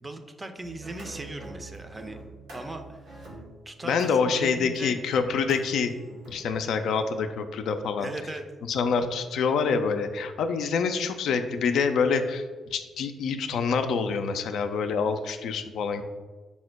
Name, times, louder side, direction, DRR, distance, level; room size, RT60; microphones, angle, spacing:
voice 1, 0.0-2.2 2.5-3.4 3.7-5.0 8.0-8.5, right 2 dB, 25° right, 7 dB, 0.5 m, -39 dB
sound 1, 0.6-6.9, right 2 dB, 75° right, 1.0 m, -45 dB
voice 2, 3.8-5.9 6.3-8.1 8.7-12.4 12.7-16.0, left 5 dB, 70° left, 8 dB, 0.3 m, -26 dB
4.2 x 2.1 x 4.5 m, 1.4 s
hypercardioid pair, 45°, 0 cm